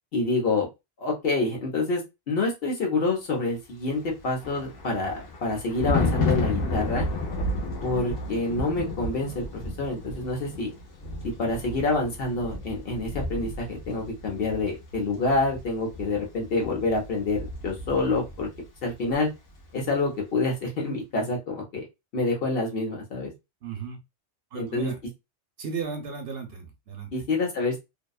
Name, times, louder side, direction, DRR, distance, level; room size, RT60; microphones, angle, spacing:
voice 1, 0.1-0.7 1.0-7.1 7.8-10.7 11.4-18.5 18.8-19.3 19.7-21.8 22.1-23.3 24.5-24.9 27.1-27.8, left 2 dB, 55° left, 0 dB, 1.0 m, -27 dB
Thunder, 4.0-18.6 18.9-19.2, left 2 dB, 90° left, 1.1 m, -32 dB
voice 2, 23.6-24.0 24.5-25.0 25.6-27.1, right 5 dB, 60° right, 5 dB, 0.8 m, -35 dB
2.7 x 2.2 x 2.3 m, 0.23 s
omnidirectional pair, 1.2 m